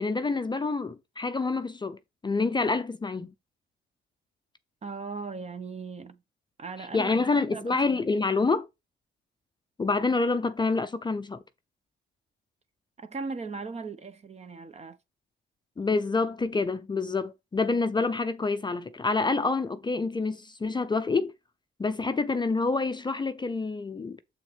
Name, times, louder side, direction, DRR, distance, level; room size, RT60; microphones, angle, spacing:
voice 1, 0.0-2.0 2.2-3.3 6.9-8.7 9.8-11.4 15.8-21.3 21.8-24.2, left 3 dB, 20° left, 0.5 m, -27 dB
voice 2, 4.8-6.2 6.6-8.1 13.0-15.0, right 4 dB, 35° right, 0.9 m, -38 dB
7.2 x 6.2 x 3.4 m
cardioid pair, 90°, 20 cm